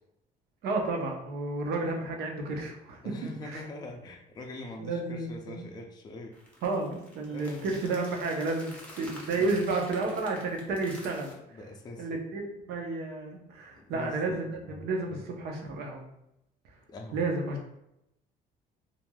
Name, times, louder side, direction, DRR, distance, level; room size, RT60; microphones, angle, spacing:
voice 1, 0.6-3.1 3.5-3.6 4.8-5.7 6.6-11.6 12.0-16.1 17.1-17.6, right 3 dB, 75° right, 1 dB, 0.6 m, -32 dB
voice 2, 3.0-6.4 7.3-7.7 9.0-9.6 11.5-12.1 13.7-15.3 16.9-17.2, left 2 dB, 25° left, 2 dB, 0.4 m, -44 dB
sound 1, 6.3-11.3, left 1 dB, 5° left, 0.8 m, -49 dB
3.0 x 2.5 x 2.2 m, 0.84 s
cardioid pair, 110°, 17 cm